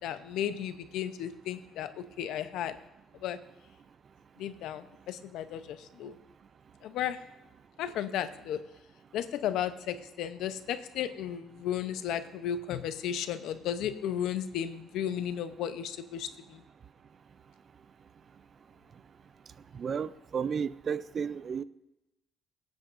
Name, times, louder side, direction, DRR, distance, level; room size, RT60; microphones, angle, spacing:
voice 1, 0.0-2.8 3.2-3.4 4.4-6.2 6.8-7.2 7.8-8.6 9.1-16.6, left 10 dB, 80° left, 11 dB, 0.7 m, -34 dB
voice 2, 19.7-21.6, right 6 dB, 35° right, 16 dB, 0.3 m, -33 dB
22.0 x 9.0 x 2.6 m, 0.94 s
cardioid pair, 165°, 0 cm